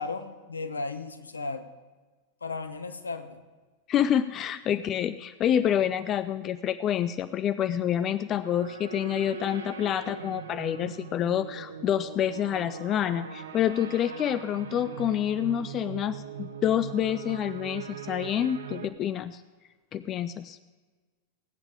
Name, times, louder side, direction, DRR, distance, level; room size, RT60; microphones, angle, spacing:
voice 1, 0.0-1.7 2.4-3.4, left 3 dB, 75° left, 9 dB, 1.1 m, -35 dB
voice 2, 3.9-19.4 19.9-20.6, left 10 dB, 30° left, 14 dB, 0.4 m, -28 dB
sound 1, 8.4-18.9, right 6 dB, 65° right, 0.9 m, -40 dB
19.5 x 8.7 x 4.8 m, 1.3 s
figure-of-eight pair, 90°, 0 cm